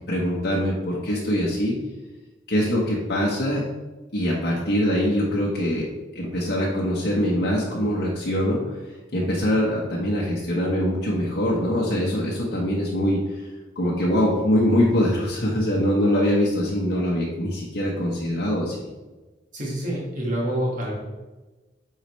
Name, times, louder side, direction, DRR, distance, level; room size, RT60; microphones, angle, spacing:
voice 1, 0.1-1.8 2.5-3.6 4.1-5.9 6.1-8.8 9.1-13.5 13.7-18.8, equal, 65° left, -5 dB, 1.2 m, -23 dB
voice 2, 19.5-20.9, right 1 dB, 45° right, -4 dB, 1.7 m, -27 dB
8.4 x 4.8 x 3.3 m, 1.2 s
head